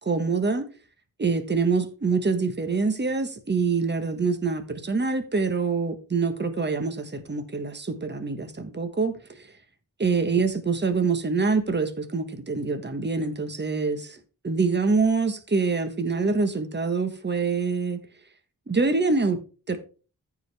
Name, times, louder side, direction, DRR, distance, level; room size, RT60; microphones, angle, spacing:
voice 1, 0.0-0.6 1.2-9.4 10.0-14.2 14.4-18.0 18.7-19.4 19.7-19.8, right 4 dB, 30° right, 1.2 m, -25 dB
14.5 x 4.9 x 3.4 m
wide cardioid pair, 125°, 35 cm